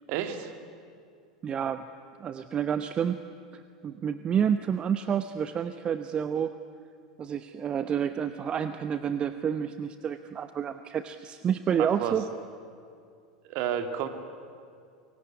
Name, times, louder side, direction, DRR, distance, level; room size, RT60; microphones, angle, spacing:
voice 1, 0.1-0.5 11.8-12.2 13.4-14.1, right 9 dB, 50° right, 7 dB, 2.2 m, -31 dB
voice 2, 1.4-1.9 2.2-3.2 3.5-6.6 7.2-12.3, right 8 dB, 30° right, 11 dB, 0.9 m, -29 dB
24.5 x 22.5 x 9.7 m, 2.3 s
figure-of-eight pair, 85°, 3 cm